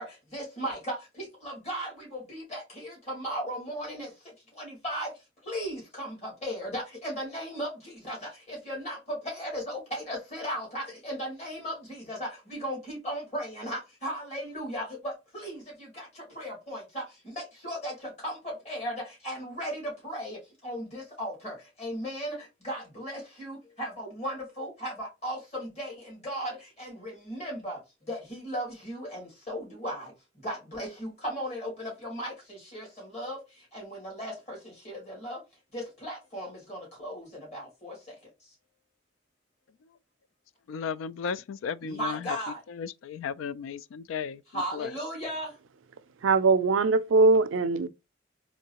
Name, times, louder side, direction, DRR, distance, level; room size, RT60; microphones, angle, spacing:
voice 1, 0.0-5.1 5.4-35.4 35.7-38.5 41.8-42.6 44.5-45.6, equal, 35° left, 2.3 m, -37 dB
voice 2, 40.7-45.0, left 6 dB, 85° left, 0.3 m, -35 dB
voice 3, 46.2-47.9, right 3 dB, 80° right, 0.4 m, -21 dB
3.7 x 3.2 x 2.8 m
head